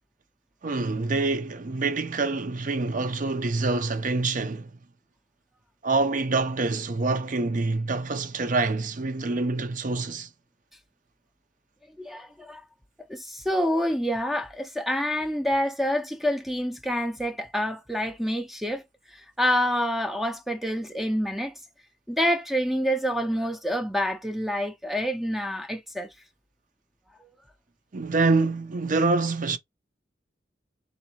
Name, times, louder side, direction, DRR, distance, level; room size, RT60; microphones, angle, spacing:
voice 1, 0.6-4.7 5.8-10.3 27.9-29.6, right 3 dB, 50° right, 0.6 m, -26 dB
voice 2, 12.0-12.6 13.1-18.8 19.1-21.5 22.1-26.1 27.2-27.3, equal, ahead, 0.5 m, -27 dB
4.0 x 3.2 x 2.9 m
head